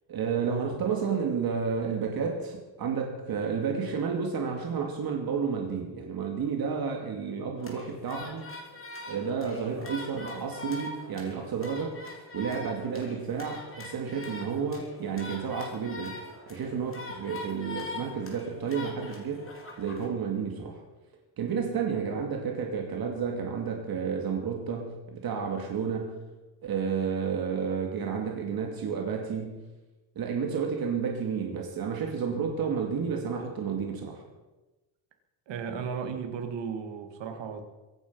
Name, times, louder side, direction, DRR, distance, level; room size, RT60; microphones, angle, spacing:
voice 1, 0.1-8.5 9.0-11.9 12.3-16.2 16.5-19.5 19.8-20.8 21.4-26.2 26.6-29.6 30.2-34.2, right 6 dB, 50° right, 2.4 m, -31 dB
sound 1, 7.6-20.1, left 2 dB, 25° left, 3.2 m, -43 dB
voice 2, 35.5-37.6, right 6 dB, 65° right, 2.4 m, -35 dB
23.0 x 9.4 x 5.5 m
cardioid pair, 160°, 47 cm